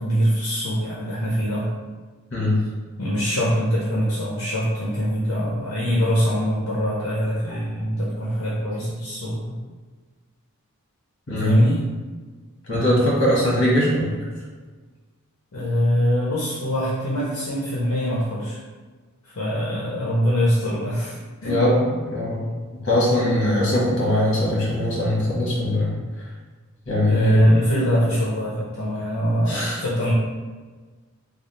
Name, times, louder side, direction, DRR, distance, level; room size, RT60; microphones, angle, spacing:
voice 1, 0.0-1.7 3.0-9.6 11.4-11.8 15.5-18.6 19.2-21.2 21.4-21.6 27.0-30.1, equal, 70° left, -7 dB, 0.7 m, -23 dB
voice 2, 12.7-14.1 21.4-22.5 22.8-25.9 26.9-27.6 29.5-29.8, left 1 dB, 55° left, -5 dB, 1.3 m, -21 dB
3.4 x 2.0 x 4.1 m, 1.4 s
head